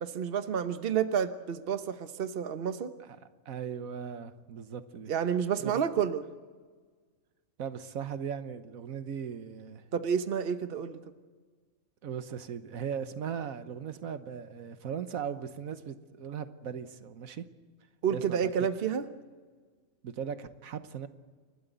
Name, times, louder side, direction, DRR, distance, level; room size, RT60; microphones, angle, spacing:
voice 1, 0.0-2.9 5.1-6.2 9.9-11.0 18.0-19.0, right 7 dB, 45° right, 1.1 m, -30 dB
voice 2, 3.4-5.1 5.6-5.8 7.6-9.9 12.0-17.5 18.1-18.5 20.0-21.1, right 7 dB, 85° right, 1.4 m, -38 dB
29.5 x 12.5 x 8.1 m
omnidirectional pair, 1.4 m